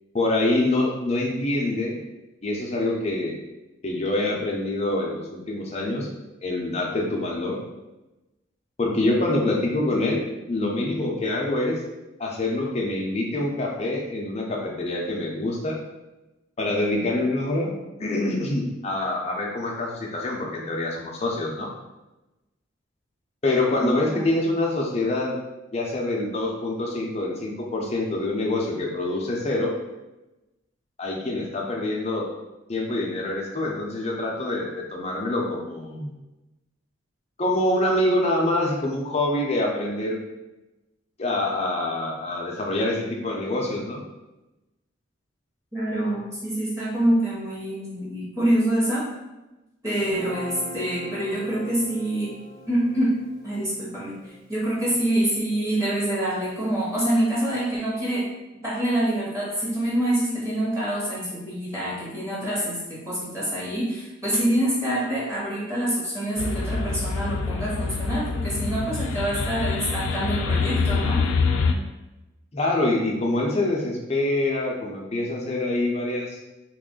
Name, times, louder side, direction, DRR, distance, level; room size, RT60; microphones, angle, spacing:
voice 1, 0.1-2.0 2.4-3.4 3.8-6.1 6.4-7.6 8.8-11.8 12.2-15.8 16.6-21.7 23.4-25.3 25.7-29.7 31.0-32.3 32.7-36.1 37.4-40.2 41.2-44.0 72.5-76.4, left 2 dB, 30° left, -1 dB, 0.5 m, -25 dB
voice 2, 23.8-24.4 45.7-49.0 49.8-52.3 52.7-53.1 53.4-58.2 58.6-71.2, right 1 dB, 15° right, -7 dB, 1.1 m, -26 dB
Guitar, 50.0-56.3, equal, 85° right, 1.0 m, -41 dB
sound 1, 66.4-71.7, left 4 dB, 85° left, 0.3 m, -25 dB
3.0 x 2.4 x 3.7 m, 1.0 s
head